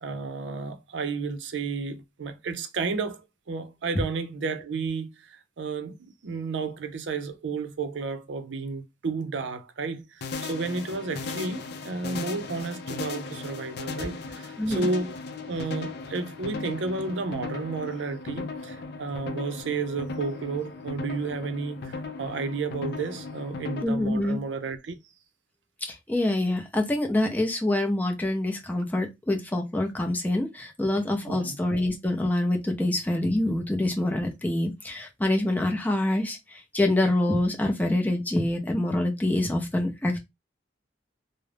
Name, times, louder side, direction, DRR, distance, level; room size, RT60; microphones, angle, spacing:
voice 1, 0.0-3.2 3.5-15.1 15.5-25.0 31.3-31.6, right 4 dB, 75° right, 0.4 m, -32 dB
sound 1, 10.2-23.8, left 4 dB, 60° left, 0.4 m, -37 dB
voice 2, 14.6-14.9 23.8-24.4 25.9-40.2, left 1 dB, 10° left, 0.5 m, -26 dB
2.4 x 2.0 x 3.2 m
head